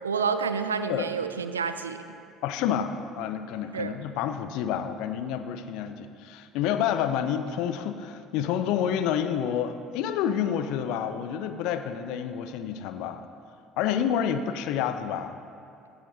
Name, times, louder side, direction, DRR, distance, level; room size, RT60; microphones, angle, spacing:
voice 1, 0.0-2.1 3.7-4.0, right 5 dB, 85° right, 10 dB, 0.4 m, -29 dB
voice 2, 2.4-13.3 13.8-15.4, left 9 dB, 60° left, 10 dB, 0.5 m, -29 dB
16.0 x 10.0 x 2.7 m, 2.7 s
figure-of-eight pair, 60°, 0 cm